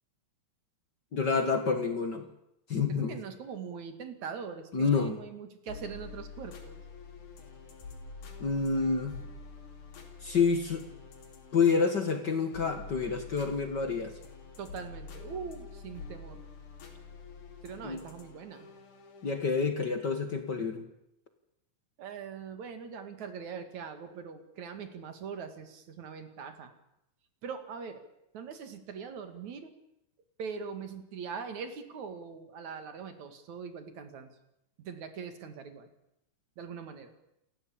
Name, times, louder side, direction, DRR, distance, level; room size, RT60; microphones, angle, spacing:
voice 1, 1.1-2.3 2.7-3.2 4.7-5.2 8.4-9.2 10.2-10.8 11.5-14.1 17.8-18.0 19.2-20.8, left 5 dB, 40° left, 7 dB, 1.9 m, -28 dB
voice 2, 2.9-6.8 14.6-16.4 17.6-18.7 22.0-26.7 27.4-28.0 28.3-29.7 30.4-34.4 34.8-35.9 36.6-37.1, right 6 dB, 70° right, 8 dB, 3.4 m, -42 dB
sound 1, 5.7-19.5, left 4 dB, 90° left, 4.4 m, -47 dB
29.0 x 14.0 x 8.7 m, 0.83 s
omnidirectional pair, 3.4 m